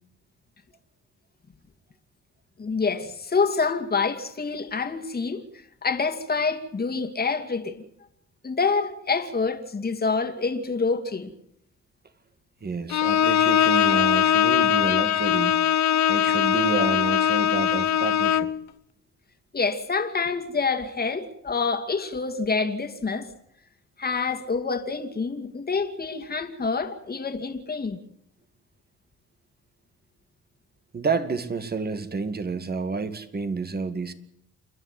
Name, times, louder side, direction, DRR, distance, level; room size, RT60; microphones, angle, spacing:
voice 1, 2.6-5.4 5.8-7.8 8.4-11.3 19.5-23.3 24.0-28.0, left 4 dB, 30° left, 2.4 m, -27 dB
voice 2, 12.6-15.8 16.1-18.5 30.9-34.1, right 4 dB, 30° right, 2.0 m, -29 dB
Bowed string instrument, 12.9-18.6, left 10 dB, 65° left, 1.0 m, -21 dB
28.5 x 11.0 x 9.8 m
cardioid pair, 90°, 30 cm